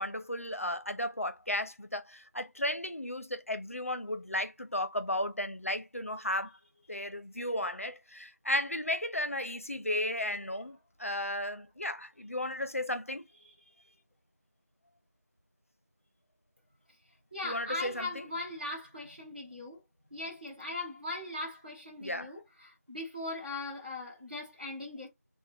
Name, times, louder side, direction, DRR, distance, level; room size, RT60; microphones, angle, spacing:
voice 1, 0.0-6.6 6.9-13.2 17.4-18.2 22.0-22.3, left 1 dB, 55° left, 0.5 m, -34 dB
voice 2, 13.4-13.9 17.3-19.8 20.1-25.1, left 2 dB, 35° right, 1.0 m, -40 dB
3.2 x 2.1 x 3.4 m
figure-of-eight pair, 180°, 9 cm